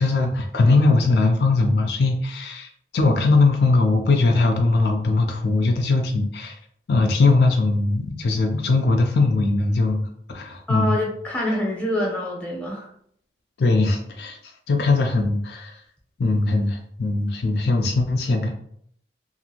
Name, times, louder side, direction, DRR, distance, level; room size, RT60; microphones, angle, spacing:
voice 1, 0.0-6.6 6.9-10.0 10.3-11.0 13.6-15.8 16.2-18.5, left 3 dB, 70° left, 4 dB, 0.4 m, -20 dB
voice 2, 10.7-12.9, left 1 dB, 10° left, -2 dB, 0.7 m, -25 dB
2.5 x 2.4 x 2.9 m, 0.66 s
head